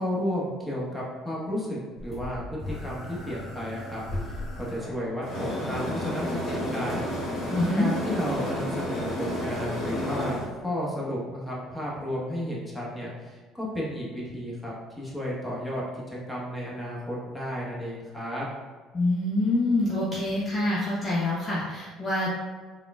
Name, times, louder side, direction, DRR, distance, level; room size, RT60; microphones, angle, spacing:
voice 1, 0.0-7.1 7.7-18.5, equal, 5° left, -6 dB, 1.1 m, -33 dB
sound 1, 2.0-10.5, equal, 50° left, 1.0 m, -32 dB
voice 2, 7.5-7.9 18.9-22.4, left 2 dB, 30° left, -6 dB, 0.6 m, -26 dB
3.6 x 2.3 x 2.3 m, 1.4 s
hypercardioid pair, 60°, 0 cm